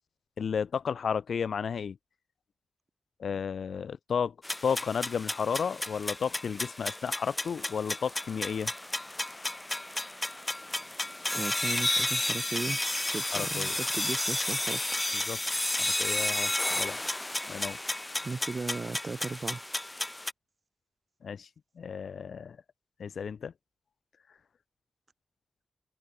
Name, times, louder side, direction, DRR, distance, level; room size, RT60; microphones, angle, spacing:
voice 1, 0.4-2.0 3.2-4.3 4.6-8.7 13.3-13.7 15.3-15.4 15.8-17.0 17.5-17.8 21.2-21.5 21.8-22.6 23.0-23.5, left 6 dB, 75° left, 1.0 m, -33 dB
sound 1, 4.4-20.3, left 1 dB, 20° left, 0.4 m, -32 dB
voice 2, 11.3-12.8 13.1-14.8 18.2-19.6, right 4 dB, 45° right, 1.3 m, -36 dB
cardioid pair, 60°, 0 cm